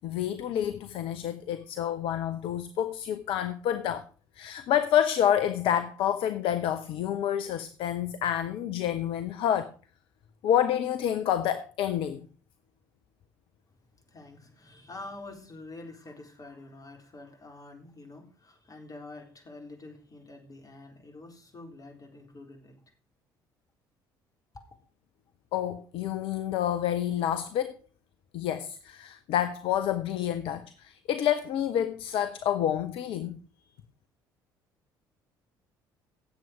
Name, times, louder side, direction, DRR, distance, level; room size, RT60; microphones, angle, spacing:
voice 1, 0.0-4.0 4.4-9.7 10.4-12.3 25.5-27.7 28.3-33.4, left 10 dB, 50° left, 0.8 m, -28 dB
voice 2, 13.8-22.8 24.5-24.6, left 2 dB, 30° left, 4.0 m, -47 dB
16.5 x 7.7 x 4.9 m
figure-of-eight pair, 50°, 11 cm